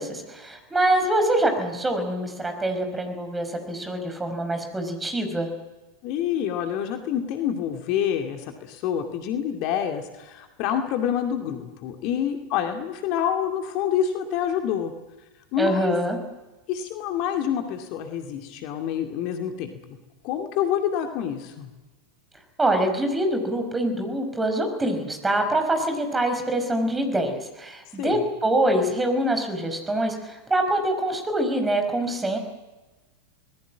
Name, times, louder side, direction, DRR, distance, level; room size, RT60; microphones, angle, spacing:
voice 1, 0.0-5.5 15.6-16.2 22.6-32.4, right 1 dB, 10° right, 6 dB, 5.5 m, -25 dB
voice 2, 6.0-14.9 15.5-15.9 16.7-19.7 20.2-21.7 28.0-28.2, left 9 dB, 45° left, 5 dB, 2.4 m, -27 dB
25.5 x 20.0 x 7.6 m, 1.1 s
figure-of-eight pair, 90°, 0 cm